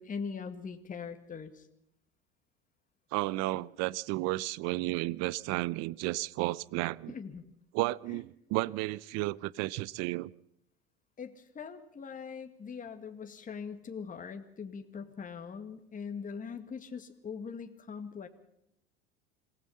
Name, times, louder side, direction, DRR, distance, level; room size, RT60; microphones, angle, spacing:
voice 1, 0.0-1.7 7.1-7.4 8.1-8.2 11.2-18.3, left 6 dB, 25° left, 2.0 m, -41 dB
voice 2, 3.1-7.1 7.7-10.3, right 20 dB, 60° right, 0.7 m, -32 dB
27.0 x 17.0 x 5.6 m
hypercardioid pair, 80°, 30 cm